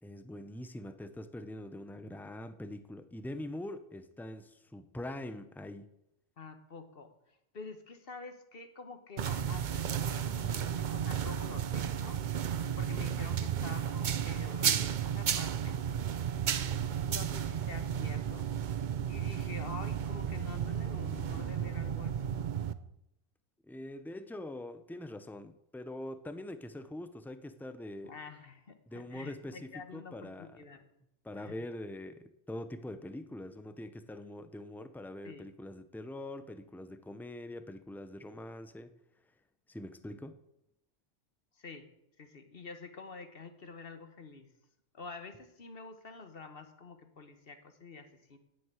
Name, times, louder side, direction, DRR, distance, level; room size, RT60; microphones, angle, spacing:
voice 1, 0.0-5.9 23.7-28.2 28.9-29.6 29.9-30.5 31.2-38.9 39.7-40.4, left 1 dB, 5° left, 11 dB, 0.3 m, -43 dB
voice 2, 6.4-12.2 12.8-15.8 17.1-18.5 19.1-22.4 28.0-30.9 31.4-31.6 35.2-35.5 41.5-41.9 42.2-44.5 44.9-48.4, left 4 dB, 50° left, 8 dB, 1.3 m, -48 dB
sound 1, 9.2-22.7, right 8 dB, 50° right, 0.6 m, -33 dB
9.4 x 7.9 x 9.0 m, 0.83 s
omnidirectional pair, 1.3 m